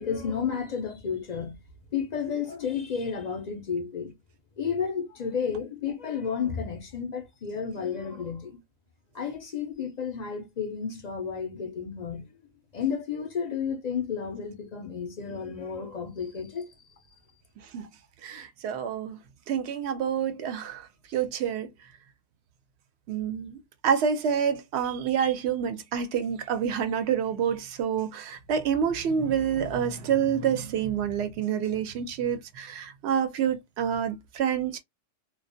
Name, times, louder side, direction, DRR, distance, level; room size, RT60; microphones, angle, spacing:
voice 1, 0.0-1.6 1.9-4.1 4.6-8.6 9.1-12.3 12.7-16.7, left 6 dB, 55° left, 0.5 m, -32 dB
voice 2, 18.2-19.2 19.5-21.7 23.1-34.8, right 8 dB, 65° right, 0.8 m, -28 dB
2.4 x 2.1 x 2.5 m
omnidirectional pair, 1.3 m